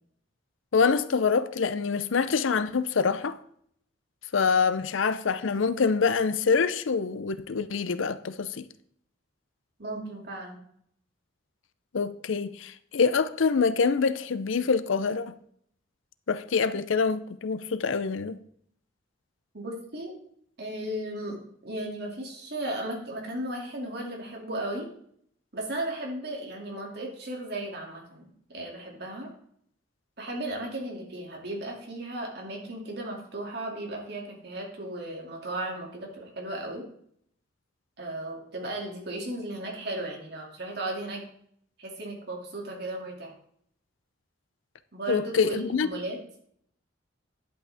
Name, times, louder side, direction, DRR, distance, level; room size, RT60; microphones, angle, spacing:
voice 1, 0.7-3.4 4.3-8.7 11.9-15.3 16.3-18.4 45.1-45.9, left 5 dB, 80° left, 0.5 m, -25 dB
voice 2, 9.8-10.6 19.5-20.1 20.6-24.9 25.5-28.2 28.5-29.3 30.2-36.8 38.0-41.2 41.8-43.3 44.9-46.2, right 1 dB, 55° right, 2.4 m, -35 dB
11.0 x 8.2 x 3.5 m
head